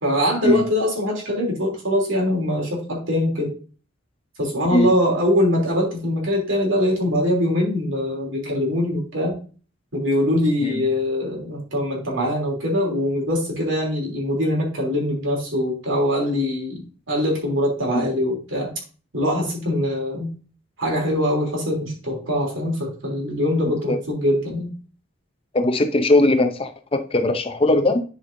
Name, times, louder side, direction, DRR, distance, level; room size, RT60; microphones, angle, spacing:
voice 1, 0.0-3.5 4.4-9.4 9.9-18.7 19.1-20.3 20.8-24.7, left 1 dB, 75° right, 3.2 m, -22 dB
voice 2, 25.5-28.0, left 2 dB, 30° left, 0.6 m, -19 dB
11.0 x 5.2 x 2.7 m
head